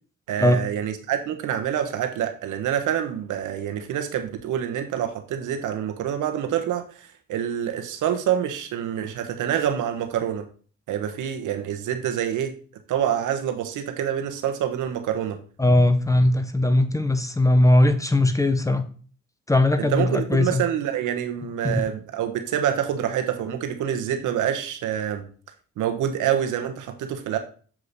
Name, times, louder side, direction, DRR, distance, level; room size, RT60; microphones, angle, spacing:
voice 1, 0.3-10.5 10.9-12.5 12.9-15.4 19.8-25.3 25.8-27.4, right 9 dB, 80° right, 7 dB, 1.2 m, -26 dB
voice 2, 15.6-18.8 19.5-20.6 21.6-21.8, left 1 dB, 10° left, 9 dB, 0.9 m, -19 dB
7.5 x 5.0 x 4.1 m, 0.42 s
cardioid pair, 90°, 30 cm